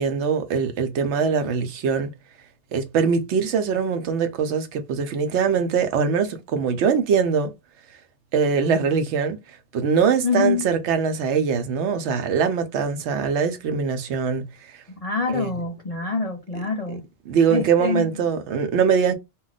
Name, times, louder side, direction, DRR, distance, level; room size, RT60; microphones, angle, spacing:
voice 1, 0.0-2.1 2.7-7.5 8.3-9.4 9.7-14.5 15.3-15.5 17.3-19.2, right 6 dB, 80° right, 0.9 m, -22 dB
voice 2, 10.2-10.6 15.0-17.0 17.5-18.3, left 4 dB, 60° left, 0.4 m, -25 dB
2.3 x 2.1 x 3.9 m
omnidirectional pair, 1.2 m